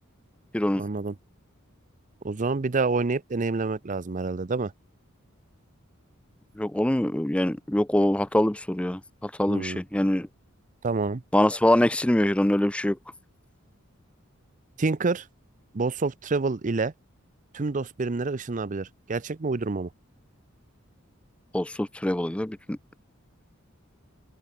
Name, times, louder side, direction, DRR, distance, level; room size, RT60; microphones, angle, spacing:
voice 1, 0.8-1.1 2.2-4.7 9.5-9.8 10.8-11.2 14.8-15.3 15.7-16.9 17.5-19.9, right 3 dB, 40° right, 0.6 m, -27 dB
voice 2, 6.6-10.3 11.3-13.0 21.5-22.8, left 1 dB, 5° left, 0.5 m, -24 dB
open air
head